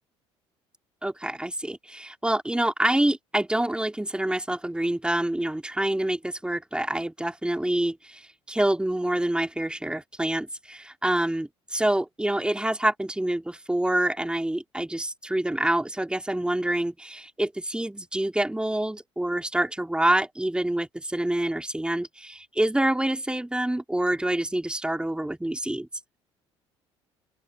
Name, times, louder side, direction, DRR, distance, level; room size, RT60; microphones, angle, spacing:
voice 1, 1.0-25.9, right 1 dB, 5° right, 4.5 m, -27 dB
open air
figure-of-eight pair, 55°, 15 cm